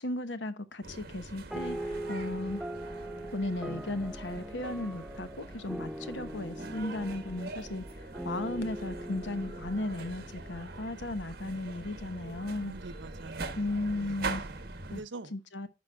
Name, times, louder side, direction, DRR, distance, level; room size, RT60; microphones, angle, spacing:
voice 1, 0.0-2.6 3.3-7.8 8.2-12.7 13.6-14.4 14.9-15.0 15.3-15.7, left 2 dB, 80° left, 1.0 m, -35 dB
sound 1, 0.8-15.0, right 3 dB, 55° right, 1.2 m, -43 dB
sound 2, 1.5-11.3, right 1 dB, ahead, 0.3 m, -41 dB
voice 2, 12.6-13.8 14.0-15.3, right 3 dB, 80° right, 0.7 m, -46 dB
15.0 x 5.2 x 2.3 m
head